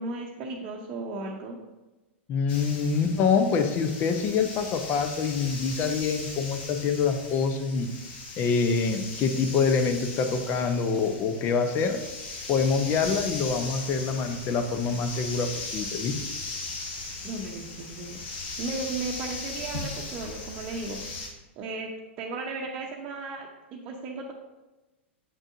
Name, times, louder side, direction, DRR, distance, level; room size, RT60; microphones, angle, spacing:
voice 1, 0.0-1.6 17.2-18.2 18.6-21.0 21.6-21.9 22.2-24.3, right 3 dB, 35° right, -1 dB, 0.8 m, -35 dB
voice 2, 2.3-7.9 8.4-12.0 12.5-16.1, left 5 dB, 35° left, 7 dB, 0.6 m, -25 dB
sound 1, 2.5-21.3, left 3 dB, 55° left, 1.5 m, -38 dB
7.6 x 6.1 x 2.6 m, 1.1 s
figure-of-eight pair, 100°, 7 cm